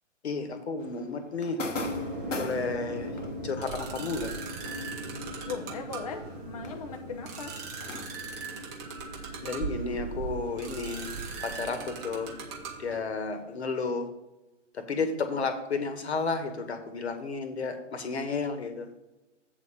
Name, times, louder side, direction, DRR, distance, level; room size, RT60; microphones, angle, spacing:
voice 1, 0.2-1.6 2.4-3.1 3.4-4.3 9.4-11.1 11.4-12.3 12.8-14.1 14.7-18.9, left 4 dB, 60° left, 8 dB, 1.2 m, -32 dB
sound 1, 0.8-9.8 10.0-13.6, left 3 dB, 75° left, 1.0 m, -44 dB
sound 2, 1.7-13.0, right 3 dB, 15° right, 0.6 m, -38 dB
voice 2, 5.5-7.5, left 5 dB, 30° left, 3 dB, 0.5 m, -38 dB
8.0 x 3.7 x 6.6 m, 0.99 s
figure-of-eight pair, 130°, 37 cm